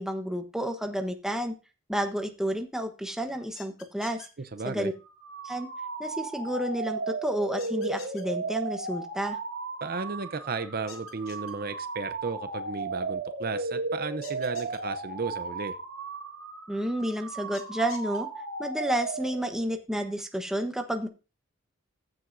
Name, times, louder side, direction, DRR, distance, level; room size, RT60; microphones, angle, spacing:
voice 1, 0.0-1.5 1.9-4.3 4.6-4.9 5.4-5.7 6.0-9.4 16.7-18.3 18.6-21.1, equal, 5° right, 5 dB, 1.0 m, -30 dB
sound 1, 3.6-4.3 7.6-8.2 10.9-11.5 14.2-14.8 17.5-18.2, left 6 dB, 85° left, 2.4 m, -46 dB
voice 2, 4.4-4.9 9.8-15.8, right 4 dB, 50° right, 10 dB, 0.7 m, -34 dB
sound 2, 5.1-19.7, right 3 dB, 80° right, 2.3 m, -35 dB
15.0 x 7.7 x 2.7 m, 0.32 s
head